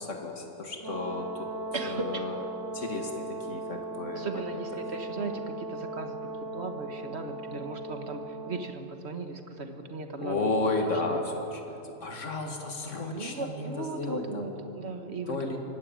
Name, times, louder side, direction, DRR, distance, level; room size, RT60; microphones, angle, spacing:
voice 1, 0.0-1.5 1.8-2.4 2.7-4.6 10.2-14.4 15.3-15.6, left 3 dB, 80° left, 2 dB, 2.4 m, -33 dB
Brass instrument, 0.8-8.8, right 2 dB, 85° right, 1.6 m, -38 dB
voice 2, 1.7-2.3 4.1-6.2 6.5-11.2 13.1-15.4, right 3 dB, 60° right, 6 dB, 1.9 m, -37 dB
24.5 x 17.0 x 8.9 m, 3.0 s
omnidirectional pair, 1.3 m